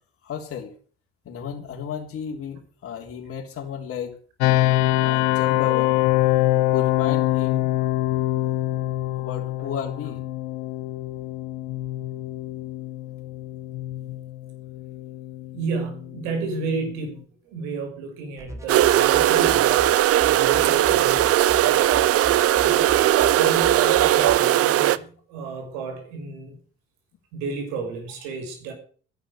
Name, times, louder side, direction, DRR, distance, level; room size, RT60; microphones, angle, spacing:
voice 1, 0.2-0.7 1.2-4.2 5.0-6.0 6.7-7.7 9.2-10.2, left 7 dB, 45° left, 1 dB, 3.4 m, -33 dB
sound 1, 4.4-17.2, left 15 dB, 65° left, 1.2 m, -25 dB
voice 2, 15.5-19.9 20.2-21.8 22.6-26.6 27.3-28.7, right 4 dB, 70° right, 4 dB, 6.2 m, -32 dB
sound 2, 18.4-24.4, equal, 10° right, 3.0 m, -40 dB
sound 3, 18.7-25.0, right 13 dB, 50° right, 0.9 m, -18 dB
13.0 x 11.5 x 6.8 m, 0.43 s
hypercardioid pair, 60°, 31 cm